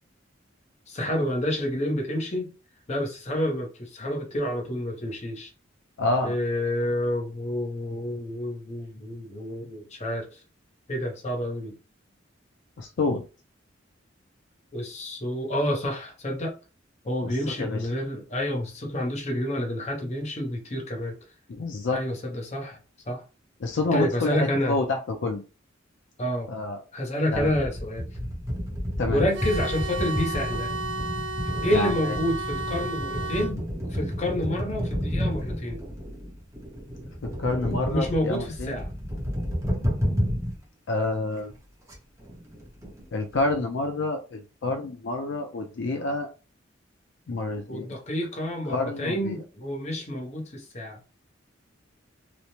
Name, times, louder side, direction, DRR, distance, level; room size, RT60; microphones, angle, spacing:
voice 1, 0.9-2.5 2.9-5.5 6.2-10.3 10.9-11.7 14.7-16.6 17.0-21.2 21.9-22.8 23.1-23.2 23.9-24.8 26.2-26.5 26.9-28.1 29.1-30.7 31.6-35.8 37.8-38.9 47.7-51.0, left 1 dB, 35° left, 0.8 m, -29 dB
voice 2, 6.0-6.4 12.8-13.2 17.2-17.8 21.5-22.0 23.6-25.4 26.5-26.8 27.3-27.5 29.0-29.3 31.7-32.1 37.4-38.8 40.9-41.5 43.1-46.3 47.3-47.9 48.7-49.4, left 2 dB, 70° left, 0.5 m, -28 dB
sound 1, 27.3-40.6 41.0-41.1 41.4-41.5 41.9-42.0 42.2-43.5, equal, 15° right, 0.7 m, -31 dB
sound 2, 29.3-33.5, right 2 dB, 70° right, 0.5 m, -33 dB
3.0 x 2.0 x 2.7 m
head